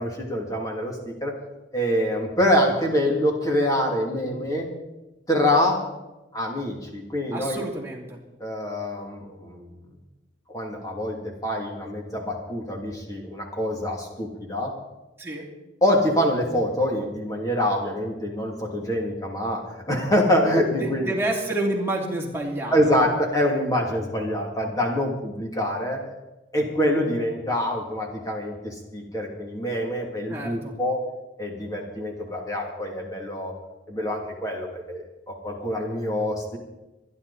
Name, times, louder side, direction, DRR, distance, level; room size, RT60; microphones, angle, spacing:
voice 1, 0.0-1.3 1.7-4.7 5.3-5.8 6.3-7.6 8.4-9.8 10.5-11.2 11.4-14.7 15.8-21.1 22.7-26.0 26.5-31.0 31.4-33.5 33.9-36.6, equal, 20° left, -1 dB, 2.8 m, -25 dB
voice 2, 7.3-8.2 15.2-15.5 20.8-22.9 30.3-30.7, right 2 dB, 15° right, -2 dB, 2.8 m, -29 dB
26.0 x 11.0 x 4.2 m, 1.0 s
head